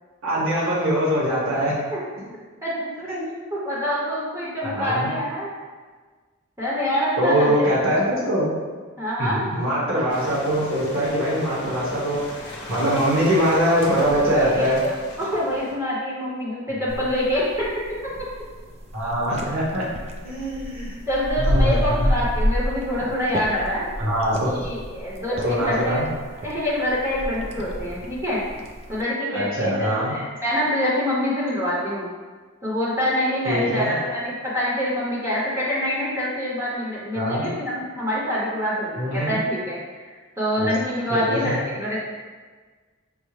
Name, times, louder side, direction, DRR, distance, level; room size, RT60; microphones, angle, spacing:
voice 1, 0.2-1.7 3.1-3.2 4.6-5.1 7.2-8.5 9.2-12.2 12.7-14.8 18.9-19.8 20.2-20.9 21.5-22.1 24.0-24.6 25.4-26.1 29.3-30.1 33.4-33.9 37.1-37.5 39.0-39.4 40.6-40.7 41.1-41.5, equal, 70° right, -7 dB, 1.2 m, -22 dB
voice 2, 2.6-3.1 3.5-5.5 6.6-7.9 9.0-9.4 14.3-17.7 21.1-23.8 24.4-26.0 26.4-28.4 28.9-32.1 32.6-40.0 40.4-42.0, equal, 15° right, -7 dB, 0.7 m, -26 dB
sound 1, 10.1-15.8, left 1 dB, 55° left, 0.7 m, -36 dB
sound 2, 16.9-29.0, equal, 30° right, 0.4 m, -29 dB
5.4 x 2.0 x 3.1 m, 1.4 s
head